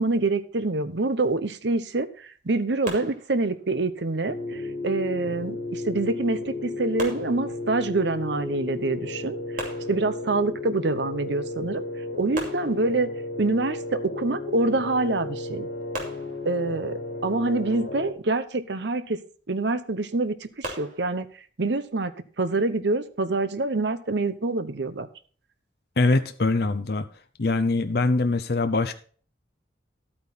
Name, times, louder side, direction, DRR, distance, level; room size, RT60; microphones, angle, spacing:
voice 1, 0.0-11.8 12.2-13.1 13.4-15.7 16.4-19.2 19.5-21.3 21.6-22.1 22.4-25.1, right 3 dB, 70° right, 12 dB, 0.8 m, -26 dB
sound 1, 2.9-3.8 7.0-8.0 9.6-10.6 12.3-13.3 15.9-16.9 20.6-21.2, right 1 dB, 45° right, 2.7 m, -38 dB
sound 2, 4.2-18.1, left 2 dB, 90° left, 2.7 m, -34 dB
voice 2, 26.0-27.0 27.4-28.9, left 3 dB, 55° left, 8 dB, 0.7 m, -23 dB
12.0 x 8.9 x 4.0 m, 0.43 s
head